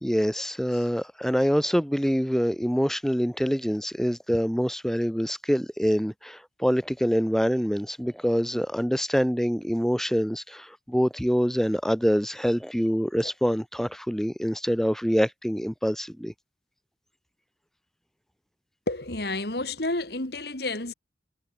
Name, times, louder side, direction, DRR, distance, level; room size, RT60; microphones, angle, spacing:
voice 1, 0.0-16.3, equal, ahead, 3.2 m, -25 dB
voice 2, 18.9-20.9, left 2 dB, 60° left, 2.9 m, -30 dB
head